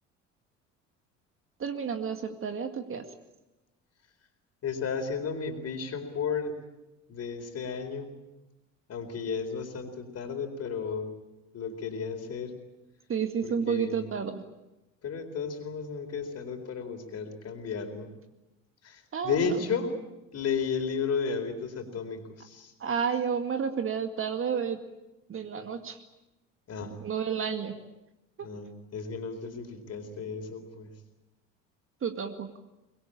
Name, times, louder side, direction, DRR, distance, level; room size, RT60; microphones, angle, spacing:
voice 1, 1.6-3.1 13.1-14.4 19.1-19.6 22.8-24.8 25.3-26.0 27.0-27.8 28.4-28.5 32.0-32.5, right 7 dB, 30° right, 7 dB, 2.1 m, -31 dB
voice 2, 4.6-6.5 7.1-8.1 8.9-11.1 11.5-12.5 13.4-14.0 15.0-18.1 18.8-19.9 20.3-22.7 26.7-26.9 28.4-30.9, left 5 dB, 40° left, 6 dB, 4.3 m, -33 dB
24.0 x 22.0 x 8.8 m, 1.0 s
figure-of-eight pair, 60°, 39 cm